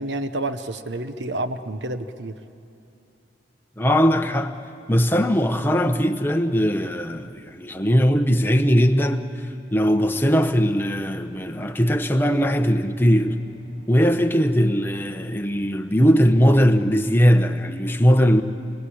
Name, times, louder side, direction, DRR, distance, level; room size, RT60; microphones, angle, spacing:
voice 1, 0.0-2.3, right 2 dB, 80° right, 1.0 m, -29 dB
voice 2, 3.8-4.6 4.9-9.3 9.7-13.4 13.9-18.4, equal, 10° left, 1.0 m, -19 dB
sound 1, 10.2-16.2, equal, 55° right, 6.4 m, -51 dB
26.5 x 24.5 x 8.7 m
head